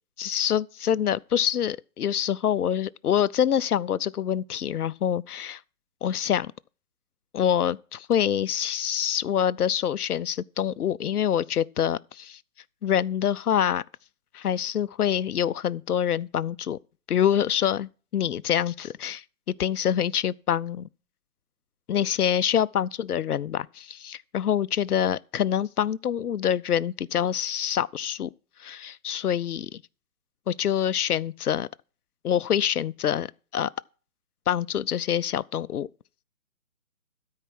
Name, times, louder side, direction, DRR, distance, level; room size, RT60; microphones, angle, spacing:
voice 1, 0.2-5.6 6.0-6.5 7.3-12.4 12.8-13.8 14.3-16.8 17.1-19.2 19.6-20.9 21.9-28.3 28.6-29.8 30.5-31.7 32.2-33.3 33.5-33.7 34.5-35.9, left 9 dB, 75° left, 0.6 m, -26 dB
13.0 x 4.7 x 6.0 m
figure-of-eight pair, 150°, 46 cm